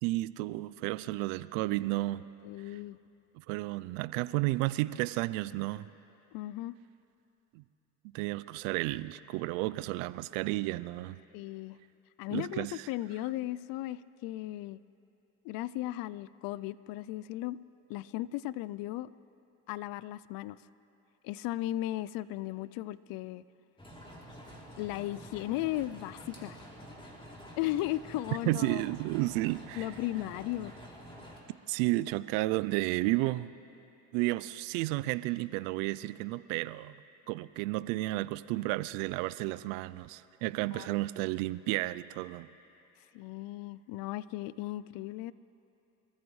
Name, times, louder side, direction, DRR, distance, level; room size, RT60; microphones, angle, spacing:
voice 1, 0.0-2.3 3.4-5.9 7.5-7.6 8.1-11.2 12.3-12.8 28.5-29.9 31.7-33.5 34.1-36.9 37.3-42.5, right 19 dB, 75° right, 17 dB, 0.6 m, -32 dB
voice 2, 2.4-3.0 6.3-6.8 11.3-11.8 12.2-14.8 15.4-17.6 17.9-19.1 19.7-20.6 21.2-23.4 24.8-26.6 27.6-28.8 29.8-30.7 40.7-40.9 43.1-45.3, left 15 dB, 60° left, 19 dB, 0.5 m, -36 dB
sound 1, 23.8-31.4, equal, 15° left, 3.1 m, -49 dB
29.5 x 14.0 x 3.2 m, 2.7 s
hypercardioid pair, 75°, 40 cm